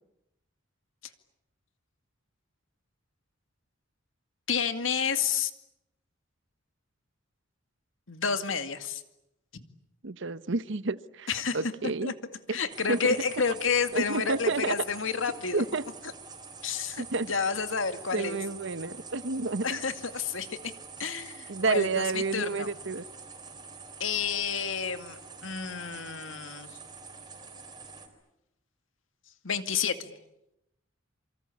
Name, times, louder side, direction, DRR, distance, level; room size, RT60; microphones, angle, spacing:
voice 1, 4.5-5.5 8.1-9.0 11.3-11.6 12.0-12.1 12.5-15.6 16.6-18.4 19.6-20.7 21.0-22.7 24.0-26.8 29.4-30.1, left 6 dB, 75° left, 9 dB, 2.3 m, -30 dB
voice 2, 10.0-11.3 11.5-12.1 12.5-12.6 12.9-13.1 13.9-14.7 15.5-15.8 17.0-17.3 18.1-19.8 21.5-23.0, right 3 dB, 65° right, 15 dB, 1.0 m, -30 dB
sound 1, 12.7-28.1, right 4 dB, 20° right, 4.4 m, -46 dB
27.5 x 25.5 x 8.5 m, 0.86 s
head